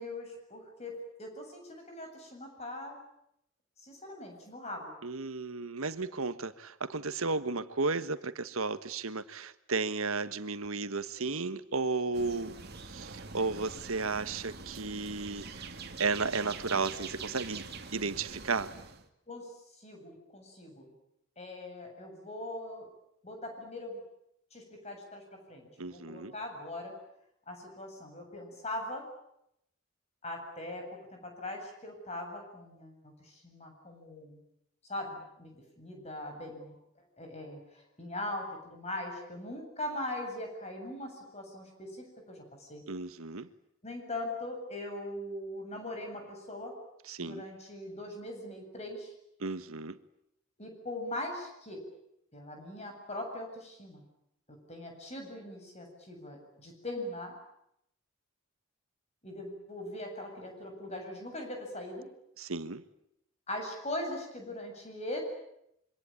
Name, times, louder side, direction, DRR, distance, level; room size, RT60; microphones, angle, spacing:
voice 1, 0.0-3.0 3.8-4.9 19.3-19.5 19.8-20.9 21.4-22.9 23.2-24.0 24.5-26.9 27.5-29.1 30.2-34.4 34.9-36.8 37.2-42.8 43.8-46.7 47.2-49.1 50.6-51.8 52.3-54.0 54.7-57.4 59.2-62.1 63.5-65.2, left 1 dB, 30° left, 3 dB, 7.7 m, -41 dB
voice 2, 5.0-12.5 12.9-15.7 16.0-17.7 17.9-18.7 25.8-26.3 42.9-43.5 47.1-47.4 49.4-50.0 62.4-62.8, right 4 dB, 85° right, 12 dB, 1.5 m, -34 dB
sound 1, 12.1-19.1, right 4 dB, 50° right, 2.5 m, -45 dB
27.0 x 25.0 x 8.8 m, 0.78 s
head